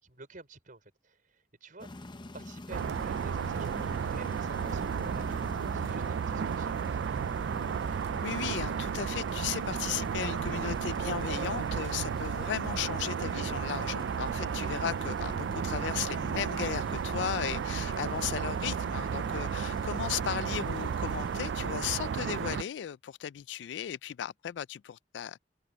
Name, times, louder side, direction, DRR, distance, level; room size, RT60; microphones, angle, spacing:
voice 1, 0.0-2.1 2.3-7.1, right 2 dB, 50° right, 5.0 m, -51 dB
sound 1, 1.8-21.4, left 2 dB, 25° left, 0.7 m, -46 dB
sound 2, 2.7-22.6, right 7 dB, 75° right, 0.3 m, -33 dB
voice 2, 8.2-25.4, left 9 dB, 80° left, 0.3 m, -36 dB
head